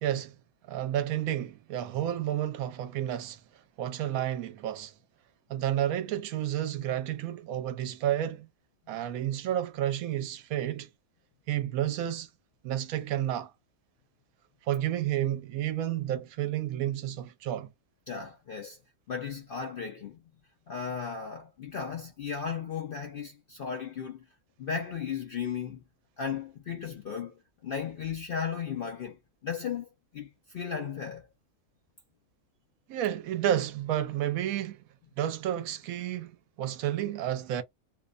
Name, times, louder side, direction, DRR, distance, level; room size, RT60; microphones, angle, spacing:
voice 1, 0.0-0.3 0.7-3.4 3.8-4.9 5.5-8.5 8.9-10.9 11.5-12.3 12.6-13.5 14.7-17.7 32.9-34.8 35.2-36.3 36.6-37.6, right 11 dB, 80° right, 1.0 m, -31 dB
voice 2, 18.1-18.8 19.1-20.2 20.7-24.2 24.6-25.8 26.2-29.2 29.4-29.9 30.1-31.3, left 6 dB, 65° left, 0.5 m, -35 dB
2.7 x 2.0 x 2.3 m
omnidirectional pair, 1.5 m